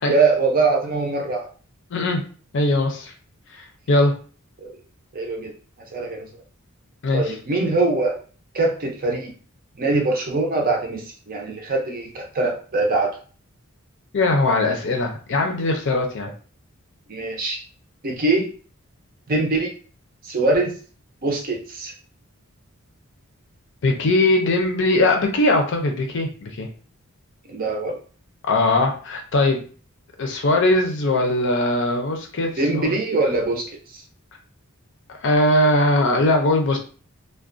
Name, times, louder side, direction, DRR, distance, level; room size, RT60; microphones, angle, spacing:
voice 1, 0.1-1.5 4.6-4.7 5.1-5.5 5.9-6.4 7.1-8.2 8.5-9.3 9.8-13.2 17.1-17.6 18.0-18.5 19.3-19.7 20.2-20.7 21.2-21.9 27.5-28.0 32.6-33.7 33.9-34.0, right 3 dB, 40° right, 1 dB, 0.5 m, -22 dB
voice 2, 1.9-2.2 2.5-3.1 3.5-4.1 7.0-7.2 14.1-16.3 23.8-26.7 28.4-29.6 30.2-32.9 35.2-36.8, left 2 dB, 55° left, 3 dB, 0.5 m, -20 dB
2.4 x 2.2 x 2.5 m, 0.39 s
head